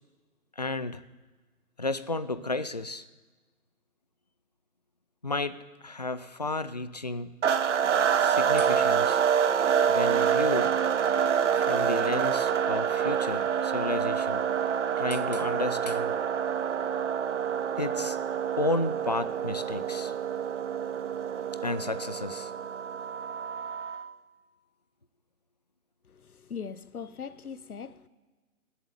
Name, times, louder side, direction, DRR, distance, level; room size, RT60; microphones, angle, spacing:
voice 1, 0.6-1.0 1.8-3.0 5.2-7.4 8.2-9.2 9.9-10.7 11.5-14.4 15.0-16.2 17.8-18.2 18.6-20.1 21.6-22.5, left 2 dB, 30° left, 0.4 m, -32 dB
sound 1, 7.4-24.1, right 8 dB, 50° right, 1.0 m, -27 dB
voice 2, 26.1-28.1, left 6 dB, 75° left, 1.2 m, -40 dB
17.5 x 8.0 x 9.6 m
figure-of-eight pair, 145°, 44 cm